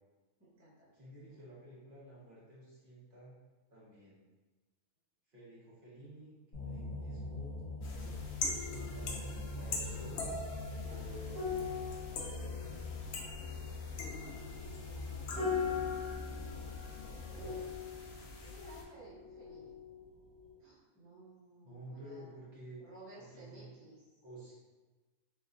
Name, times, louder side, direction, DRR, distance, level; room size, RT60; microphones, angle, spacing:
voice 1, 0.4-1.1 14.8-16.2 16.5-17.7 18.4-19.8 20.6-22.3 22.8-24.2, right 2 dB, 20° right, -8 dB, 0.4 m, -57 dB
voice 2, 0.9-3.3 3.7-4.2 5.3-7.5 7.8-8.3 8.9-9.1 9.5-10.3 10.8-11.8 12.1-13.1 21.6-22.8 23.1-23.7 24.2-24.5, right 1 dB, 35° right, -8 dB, 1.3 m, -52 dB
sound 1, 6.5-17.8, left 3 dB, 35° left, 1.8 m, -44 dB
sound 2, 7.8-18.8, left 3 dB, 60° left, 0.7 m, -43 dB
sound 3, 11.3-20.0 20.3-20.5, left 6 dB, 85° right, 1.9 m, -41 dB
3.7 x 3.6 x 2.5 m, 1.2 s
omnidirectional pair, 1.6 m